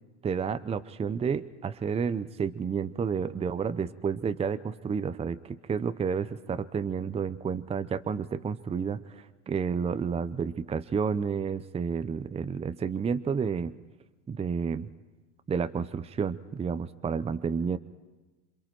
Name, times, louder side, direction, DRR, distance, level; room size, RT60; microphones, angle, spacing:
voice 1, 0.2-13.7 14.3-14.9 15.5-17.8, right 6 dB, 15° right, 14 dB, 0.8 m, -30 dB
27.5 x 25.0 x 4.5 m, 1.2 s
hypercardioid pair, 95°, 38 cm